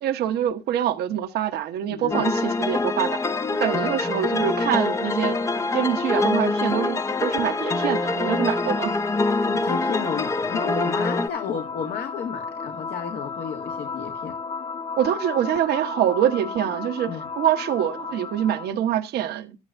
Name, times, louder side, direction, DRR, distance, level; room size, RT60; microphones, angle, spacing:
voice 1, 0.0-3.2 3.6-5.4 5.7-8.9 15.0-19.6, right 10 dB, 70° right, 1.1 m, -25 dB
voice 2, 1.9-2.3 9.4-14.4 17.1-17.3, left 7 dB, 70° left, 1.8 m, -32 dB
sound 1, 2.1-11.3, left 3 dB, 15° left, 0.6 m, -25 dB
sound 2, 3.0-18.9, left 5 dB, 40° left, 1.3 m, -36 dB
12.5 x 10.5 x 2.6 m
cardioid pair, 110°, 17 cm